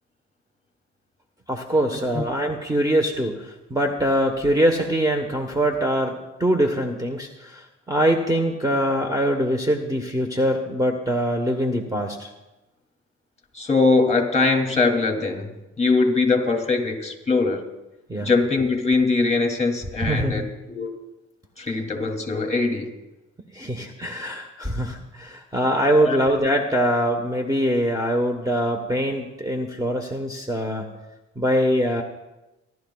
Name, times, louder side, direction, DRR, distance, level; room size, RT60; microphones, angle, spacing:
voice 1, 1.5-12.3 18.1-18.3 20.0-20.5 23.5-30.9 31.4-32.0, equal, 10° right, 4 dB, 1.2 m, -23 dB
voice 2, 13.5-15.5 15.8-17.6 18.2-20.9 21.6-22.9 26.0-26.2, left 3 dB, 20° left, 3 dB, 2.9 m, -21 dB
29.0 x 12.0 x 2.4 m, 1.0 s
cardioid pair, 90°, 30 cm